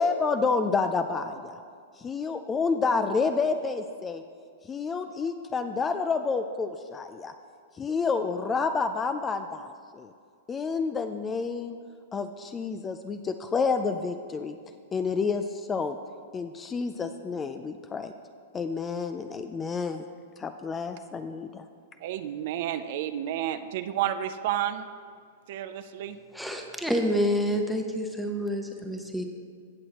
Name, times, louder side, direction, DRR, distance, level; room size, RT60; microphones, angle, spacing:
voice 1, 0.0-1.6 2.0-4.2 4.6-7.3 7.8-10.1 10.5-11.8 12.1-14.6 14.9-16.0 16.3-18.1 18.5-20.1 20.4-21.7, left 4 dB, 15° left, 8 dB, 0.4 m, -29 dB
voice 2, 22.0-24.9 25.5-26.2, right 11 dB, 55° right, 11 dB, 0.4 m, -31 dB
voice 3, 26.3-29.2, equal, ahead, 3 dB, 0.9 m, -28 dB
17.0 x 6.3 x 3.0 m, 2.2 s
hypercardioid pair, 135°, 0 cm